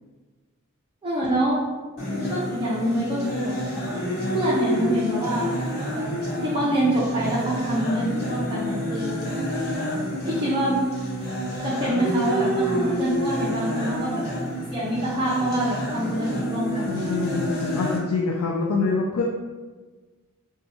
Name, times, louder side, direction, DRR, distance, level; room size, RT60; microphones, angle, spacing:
voice 1, 1.0-1.7 2.3-3.6 4.3-5.6 5.9-6.1 6.4-9.1 10.2-10.8 11.6-14.2 14.7-17.2, right 1 dB, 25° right, -8 dB, 0.6 m, -25 dB
sound 1, 2.0-18.0, equal, 45° left, 1.3 m, -28 dB
voice 2, 16.9-19.2, left 4 dB, 80° left, -1 dB, 0.4 m, -25 dB
2.7 x 2.3 x 4.1 m, 1.3 s
head